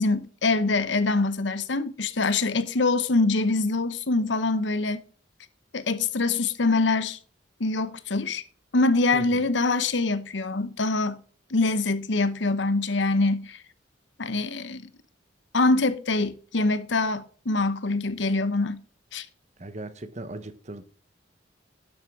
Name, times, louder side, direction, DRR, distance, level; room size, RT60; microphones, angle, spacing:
voice 1, 0.0-5.0 5.7-7.2 7.6-8.4 8.7-11.2 11.5-13.6 14.2-14.9 15.5-18.8 19.1-19.3, left 3 dB, 75° left, 0.9 m, -24 dB
voice 2, 9.1-9.5 19.6-20.8, right 2 dB, 40° right, 1.0 m, -38 dB
11.5 x 7.9 x 3.6 m
head